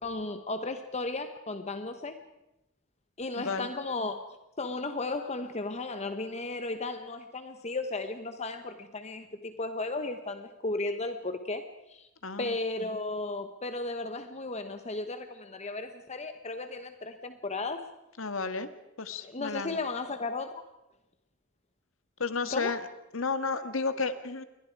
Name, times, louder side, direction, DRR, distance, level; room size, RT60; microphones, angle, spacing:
voice 1, 0.0-2.2 3.2-4.2 4.6-12.1 12.4-17.8 19.2-20.5 22.5-22.7, left 3 dB, 35° left, 8 dB, 1.2 m, -35 dB
voice 2, 3.4-3.7 12.2-12.6 18.2-18.7 19.0-19.8 22.2-22.9 23.1-24.4, left 4 dB, 85° left, 10 dB, 1.7 m, -32 dB
28.5 x 22.5 x 4.8 m, 0.91 s
head